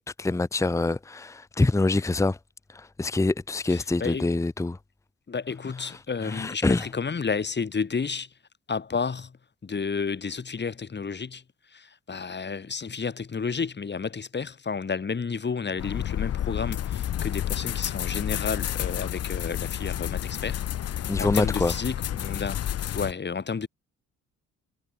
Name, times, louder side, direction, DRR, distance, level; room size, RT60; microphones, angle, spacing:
voice 1, 0.0-2.4 2.7-4.8 6.2-6.9 21.1-21.7, left 2 dB, 10° left, 0.8 m, -25 dB
voice 2, 3.7-4.3 5.3-8.3 8.7-9.4 9.6-11.4 11.7-22.6 22.9-23.7, left 5 dB, 35° left, 5.7 m, -31 dB
sound 1, 15.8-23.1, left 11 dB, 55° left, 0.8 m, -30 dB
cardioid pair, 90°, 30 cm